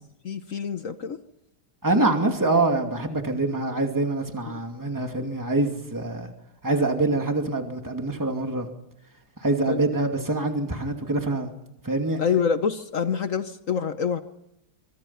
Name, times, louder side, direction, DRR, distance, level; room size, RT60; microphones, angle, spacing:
voice 1, 0.2-1.2 9.7-9.8 12.2-14.2, left 6 dB, 50° left, 10 dB, 1.1 m, -26 dB
voice 2, 1.8-6.3 6.6-8.7 9.4-11.5 11.8-12.2, right 2 dB, 10° right, 4 dB, 2.4 m, -25 dB
24.5 x 24.0 x 5.8 m, 0.86 s
omnidirectional pair, 2.3 m